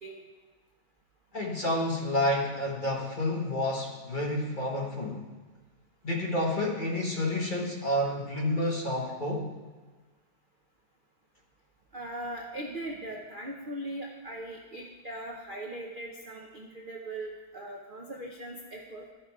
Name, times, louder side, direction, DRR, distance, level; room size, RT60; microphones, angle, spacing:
voice 1, 1.3-5.3 6.0-9.5, left 1 dB, 30° left, -2 dB, 1.3 m, -29 dB
voice 2, 11.9-19.0, right 1 dB, 45° right, -1 dB, 0.6 m, -39 dB
13.0 x 6.2 x 4.8 m, 1.3 s
omnidirectional pair, 2.1 m